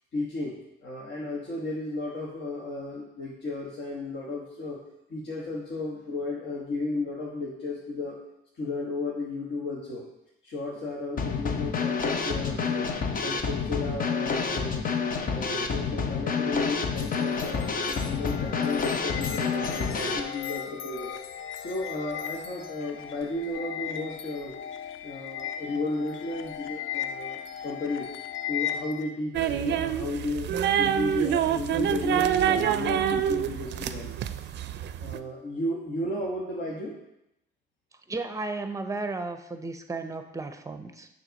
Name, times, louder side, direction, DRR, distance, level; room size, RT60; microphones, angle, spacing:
voice 1, 0.1-4.8 5.1-8.2 8.6-10.1 10.4-12.9 13.2-14.8 15.2-21.2 21.6-24.5 25.0-28.1 28.5-34.1 35.0-36.9, left 2 dB, 65° left, -5 dB, 1.3 m, -34 dB
Drum kit / Snare drum, 11.2-20.2, left 5 dB, 45° left, 0.7 m, -28 dB
sound 1, 17.0-29.1, left 9 dB, 80° left, 0.4 m, -37 dB
sound 2, 29.3-35.2, right 9 dB, 60° right, 0.4 m, -26 dB
voice 2, 38.1-41.1, right 3 dB, 15° right, 8 dB, 0.6 m, -34 dB
6.5 x 3.4 x 5.2 m, 0.84 s
cardioid pair, 90°, 20 cm